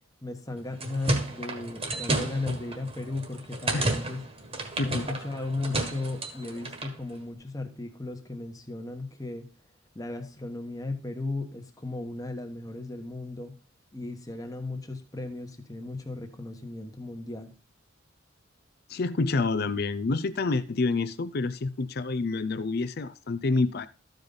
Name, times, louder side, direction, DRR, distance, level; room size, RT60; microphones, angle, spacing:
voice 1, 0.2-4.2 4.8-9.5 9.9-13.5 13.9-17.5, left 2 dB, 15° left, 1.2 m, -36 dB
sound 1, 0.6-7.0, right 2 dB, 30° right, 1.5 m, -32 dB
voice 2, 18.9-23.9, left 3 dB, 50° left, 0.5 m, -28 dB
13.5 x 5.2 x 3.9 m
head